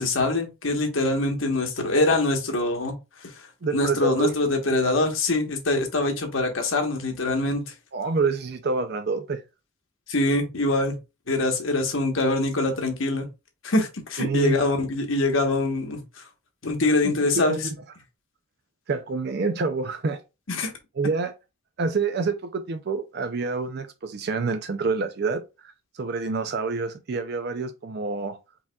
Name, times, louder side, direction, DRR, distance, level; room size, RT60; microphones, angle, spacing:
voice 1, 0.0-2.9 3.7-7.6 10.1-10.9 11.3-13.3 13.6-16.0 16.6-17.6 20.5-20.7, left 2 dB, 70° left, 1.2 m, -24 dB
voice 2, 3.6-4.3 7.9-9.4 14.2-14.6 17.0-17.7 18.9-20.2 21.0-21.3 21.8-28.4, right 4 dB, 50° right, 0.4 m, -27 dB
4.8 x 3.6 x 2.3 m
head